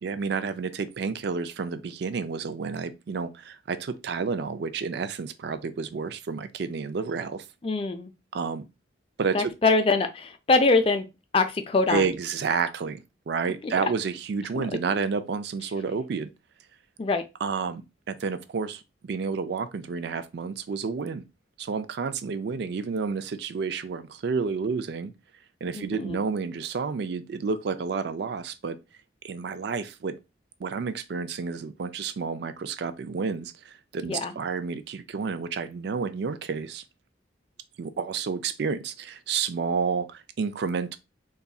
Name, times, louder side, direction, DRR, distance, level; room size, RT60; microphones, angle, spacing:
voice 1, 0.0-7.4 8.3-8.6 9.2-9.5 11.9-16.3 17.4-21.2 21.6-25.1 25.6-28.8 29.2-30.2 30.6-36.8 37.8-41.0, right 5 dB, 60° right, 0.4 m, -30 dB
voice 2, 7.6-8.1 9.3-11.0 11.3-12.1 14.6-14.7 17.0-17.2 25.7-26.2 34.0-34.3, left 3 dB, 30° left, 0.4 m, -23 dB
3.8 x 2.3 x 2.3 m
head